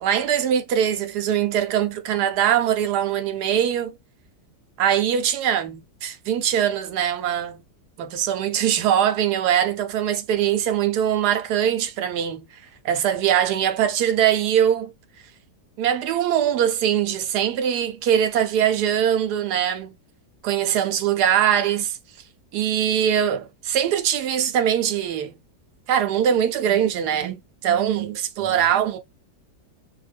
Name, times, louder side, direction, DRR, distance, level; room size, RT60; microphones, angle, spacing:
voice 1, 0.0-4.0 4.8-7.6 8.0-12.5 12.8-14.9 15.8-19.9 20.4-22.0 22.5-25.4 25.9-29.0, right 9 dB, 75° right, 1.1 m, -22 dB
2.8 x 2.1 x 3.3 m
omnidirectional pair, 1.8 m